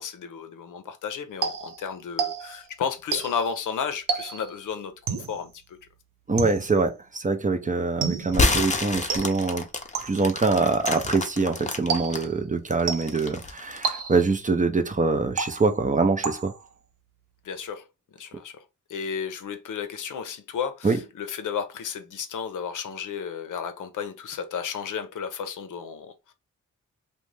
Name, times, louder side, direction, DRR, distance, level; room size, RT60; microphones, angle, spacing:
voice 1, 0.0-5.8 17.4-26.3, left 7 dB, 70° left, 0.6 m, -33 dB
sound 1, 1.4-2.7 3.1-3.5 4.1-4.6 5.1-5.5 6.4-6.9 8.0-8.5 9.1-9.5 9.9-10.3 10.9-11.3 11.9-12.4 12.9-13.3 13.8-14.4 15.4-15.9 16.2-16.7, right 6 dB, 80° right, 0.6 m, -31 dB
voice 2, 6.3-9.7 10.0-16.5 20.8-21.0, right 3 dB, 25° right, 0.5 m, -24 dB
sound 2, 8.3-12.2 12.7-14.0, left 3 dB, 20° left, 0.6 m, -27 dB
2.4 x 2.2 x 3.1 m
cardioid pair, 50°, 32 cm